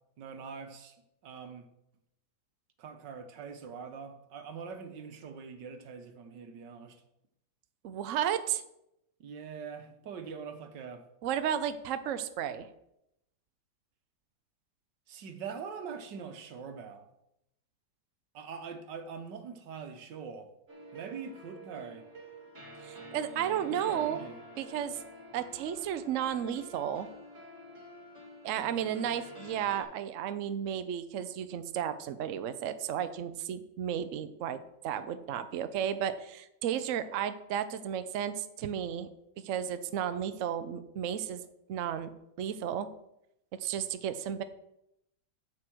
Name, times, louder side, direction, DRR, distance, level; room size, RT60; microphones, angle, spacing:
voice 1, 0.2-1.0 1.2-1.6 2.8-7.0 9.2-11.0 15.1-17.1 18.3-20.5 20.9-22.1 23.7-24.4, right 6 dB, 85° right, 1.7 m, -43 dB
voice 2, 7.8-8.6 11.2-12.7 22.8-24.2 24.6-25.0 25.3-27.1 28.4-39.1 39.4-41.4 41.7-42.1 42.4-42.9 43.5-44.4, right 9 dB, 60° right, 0.8 m, -33 dB
sound 1, 20.7-29.8, right 1 dB, 45° right, 2.5 m, -49 dB
7.9 x 7.4 x 6.1 m
omnidirectional pair, 1.9 m